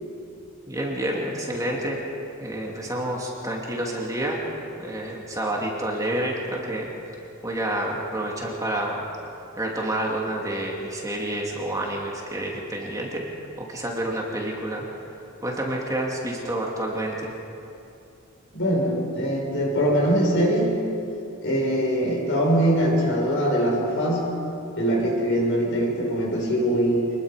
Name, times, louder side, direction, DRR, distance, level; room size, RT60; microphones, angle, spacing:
voice 1, 0.7-2.0 2.4-4.4 4.8-6.9 7.4-9.0 9.6-13.3 13.6-14.8 15.4-17.3, right 1 dB, 15° right, -2 dB, 2.7 m, -28 dB
voice 2, 18.5-20.7 21.4-24.2 24.8-27.1, equal, 65° left, -1 dB, 6.0 m, -22 dB
26.0 x 21.0 x 5.2 m, 2.7 s
head